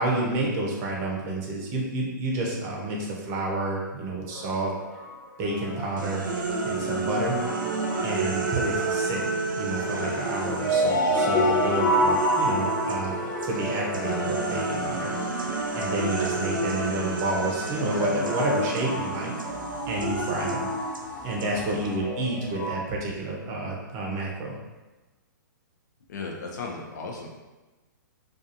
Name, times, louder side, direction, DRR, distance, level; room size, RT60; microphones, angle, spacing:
voice 1, 0.0-4.7 5.4-6.3 6.6-7.4 8.0-9.2 9.6-15.1 15.7-19.3 19.9-20.7 21.2-24.6, right 2 dB, 30° right, -2 dB, 0.6 m, -29 dB
sound 1, 4.3-5.5 5.8-5.9 6.3-8.3 9.9-22.7, equal, 30° left, 1.0 m, -29 dB
sound 2, 5.4-10.9, left 1 dB, ahead, 0.9 m, -40 dB
sound 3, 6.0-13.1 13.4-22.0, right 3 dB, 85° right, 0.4 m, -31 dB
voice 2, 26.1-27.3, left 4 dB, 60° left, 0 dB, 0.6 m, -35 dB
2.4 x 2.4 x 2.7 m, 1.2 s
hypercardioid pair, 125°, 11 cm